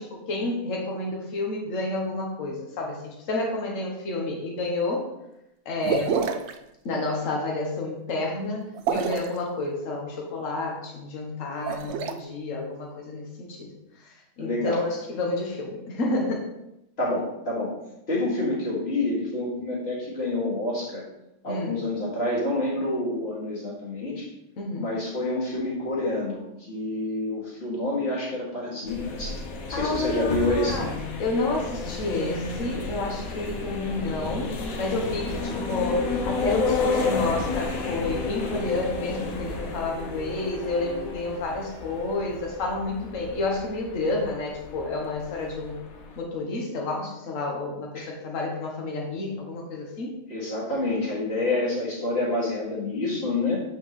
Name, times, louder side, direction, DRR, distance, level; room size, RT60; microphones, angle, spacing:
voice 1, 0.0-5.1 5.6-6.3 6.8-8.6 8.9-13.7 14.0-16.5 21.5-21.7 24.6-24.8 29.7-30.9 31.2-45.8 46.2-50.2, left 2 dB, 70° left, -1 dB, 1.4 m, -30 dB
sound 1, 5.8-6.5 8.7-9.4 11.5-12.1, right 6 dB, 65° right, 0.8 m, -27 dB
voice 2, 14.4-14.8 17.0-17.7 18.1-21.0 21.4-24.3 24.8-29.4 29.7-30.8 47.9-48.1 50.3-53.6, left 2 dB, 45° left, -6 dB, 2.3 m, -28 dB
sound 2, 28.9-46.2, left 3 dB, 90° left, 1.3 m, -32 dB
sound 3, 33.0-43.2, left 5 dB, 20° left, 1.0 m, -42 dB
7.6 x 4.6 x 3.1 m, 0.88 s
omnidirectional pair, 1.4 m